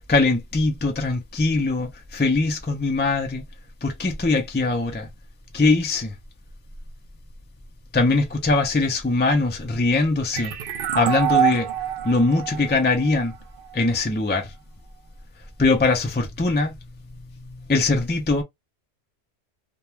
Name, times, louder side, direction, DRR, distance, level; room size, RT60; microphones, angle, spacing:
voice 1, 0.1-3.4 3.8-5.1 5.5-6.1 7.9-10.5 11.0-11.7 12.0-13.3 13.7-14.5 15.6-16.8 17.4-18.4, left 3 dB, 20° left, 0.3 m, -21 dB
sound 1, 10.3-13.8, right 10 dB, 65° right, 0.7 m, -26 dB
2.4 x 2.2 x 3.1 m
omnidirectional pair, 1.1 m